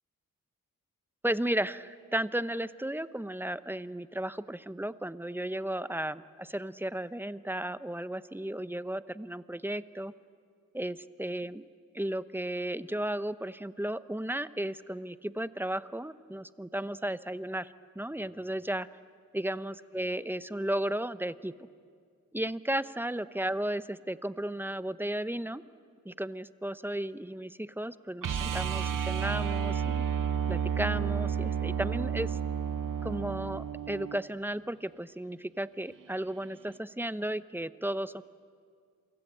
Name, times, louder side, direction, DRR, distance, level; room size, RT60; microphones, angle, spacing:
voice 1, 1.2-10.1 10.7-11.6 11.9-18.9 19.3-21.5 22.3-25.6 26.0-30.0 30.5-32.4 33.0-38.2, right 1 dB, 5° right, 14 dB, 0.7 m, -34 dB
sound 1, 28.2-34.2 36.7-36.8, right 8 dB, 70° right, 0.9 m, -31 dB
27.5 x 24.5 x 8.7 m, 2.1 s
wide cardioid pair, 90°, 33 cm